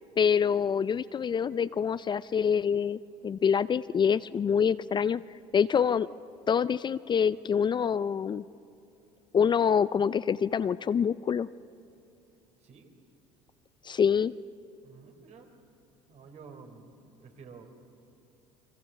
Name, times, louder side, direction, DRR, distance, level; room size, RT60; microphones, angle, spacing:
voice 1, 0.2-5.2 5.5-6.1 6.5-8.4 9.3-11.5 13.8-14.3, left 7 dB, 30° left, 16 dB, 0.5 m, -26 dB
voice 2, 14.8-15.5 16.1-17.7, right 5 dB, 50° right, 5 dB, 4.2 m, -51 dB
29.5 x 22.0 x 7.5 m, 2.7 s
hypercardioid pair, 80°, 14 cm